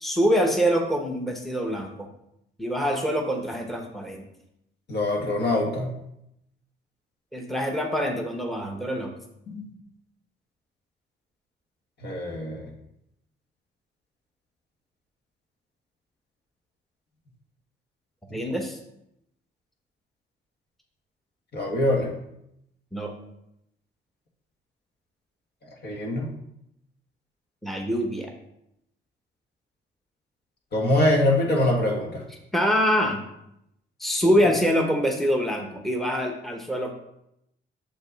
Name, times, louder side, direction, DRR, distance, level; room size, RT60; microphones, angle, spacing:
voice 1, 0.0-2.1 2.6-4.2 7.3-9.1 18.3-18.8 22.9-23.1 27.6-28.3 32.5-33.2 34.0-36.9, equal, ahead, 2 dB, 0.9 m, -25 dB
voice 2, 4.9-6.0 9.5-9.7 12.0-12.7 18.3-18.4 21.5-22.1 25.8-26.3 30.7-32.2, left 1 dB, 55° left, 0 dB, 1.7 m, -24 dB
6.9 x 5.2 x 4.0 m, 0.80 s
cardioid pair, 90°, 20 cm